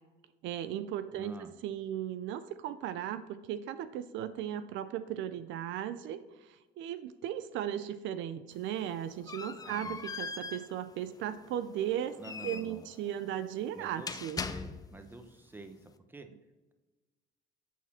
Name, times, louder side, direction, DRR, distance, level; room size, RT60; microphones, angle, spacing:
voice 1, 0.4-12.2 12.4-14.4, right 10 dB, 70° right, 12 dB, 0.4 m, -37 dB
voice 2, 1.1-1.5 9.6-10.0 12.2-12.8 13.7-14.1 14.5-16.3, right 2 dB, 10° right, 7 dB, 0.8 m, -48 dB
sound 1, 8.5-15.1, left 5 dB, 20° left, 0.4 m, -42 dB
8.3 x 4.1 x 4.3 m, 1.2 s
cardioid pair, 95°, 20 cm